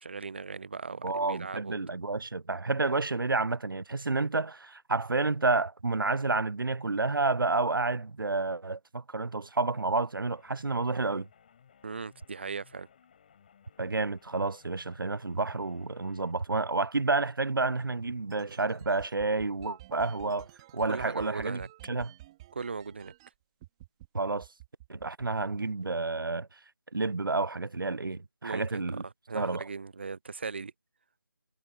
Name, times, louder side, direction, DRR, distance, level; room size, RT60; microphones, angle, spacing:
voice 1, 0.0-1.8 11.8-12.9 20.9-21.7 22.5-23.1 28.4-28.8 29.3-30.7, right 4 dB, 30° right, 0.4 m, -38 dB
voice 2, 1.0-11.3 13.8-20.5 20.7-22.1 24.1-24.5 24.9-26.6 26.9-29.0 29.3-29.7, right 3 dB, 85° right, 0.6 m, -30 dB
sound 1, 10.3-16.3, left 8 dB, 25° left, 5.6 m, -61 dB
sound 2, 17.9-23.3 23.6-24.1 24.4-25.9, right 16 dB, 15° right, 4.2 m, -52 dB
figure-of-eight pair, 165°, 11 cm